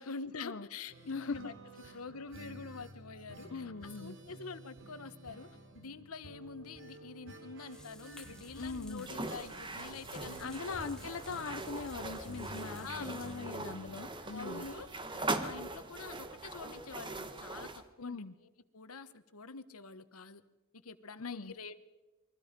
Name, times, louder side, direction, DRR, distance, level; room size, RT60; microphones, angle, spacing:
voice 1, 0.0-5.5 5.7-11.1 12.8-13.2 14.3-14.9 15.1-17.7 18.0-20.4 20.8-21.7, left 4 dB, 85° left, 12 dB, 1.3 m, -46 dB
sound 1, 0.9-16.6 16.8-16.9 17.2-17.3, right 1 dB, 60° right, 3.2 m, -53 dB
voice 2, 1.1-1.5 1.8-1.9 3.5-4.2 8.6-9.1 10.4-14.7 18.0-18.3 21.2-21.5, left 4 dB, 60° left, 9 dB, 0.7 m, -41 dB
sound 2, 7.7-13.7, left 1 dB, 5° left, 1.1 m, -53 dB
sound 3, 9.0-17.8, right 2 dB, 20° right, 1.3 m, -41 dB
28.5 x 22.5 x 5.2 m, 1.1 s
head